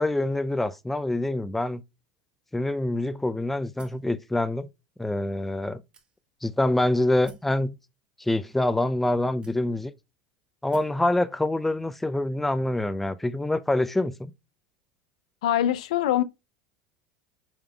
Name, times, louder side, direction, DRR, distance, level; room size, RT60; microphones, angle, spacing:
voice 1, 0.0-1.8 2.5-4.7 5.0-5.8 6.4-7.7 8.2-9.9 10.6-14.3, left 1 dB, 5° left, 0.3 m, -26 dB
sound 1, 3.8-4.1 4.9-5.0 5.9-6.5 7.2-7.6 8.5-8.6 9.4-10.0 10.7-11.0, right 4 dB, 25° right, 1.1 m, -53 dB
voice 2, 15.4-16.2, left 12 dB, 85° left, 0.4 m, -23 dB
5.0 x 3.5 x 2.2 m
supercardioid pair, 115°, 4 cm